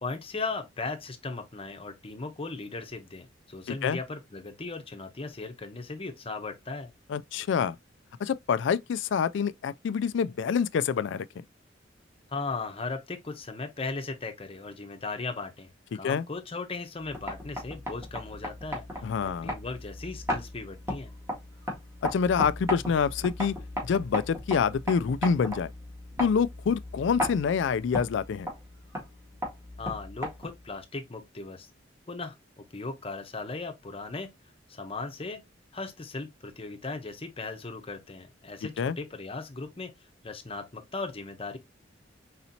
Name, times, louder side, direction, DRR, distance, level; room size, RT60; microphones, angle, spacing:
voice 1, 0.0-6.9 12.3-21.1 29.8-31.7 32.1-32.3 32.7-34.3 34.7-35.4 35.7-39.9 40.2-41.6, left 3 dB, 30° left, 0.8 m, -37 dB
voice 2, 3.7-4.0 7.1-7.8 8.2-11.3 15.9-16.2 19.0-19.5 22.0-23.5 23.8-25.7 26.2-28.5 38.8-39.0, left 6 dB, 70° left, 0.3 m, -26 dB
sound 1, 17.0-30.7, left 1 dB, 15° right, 1.9 m, -36 dB
4.3 x 4.0 x 2.7 m
head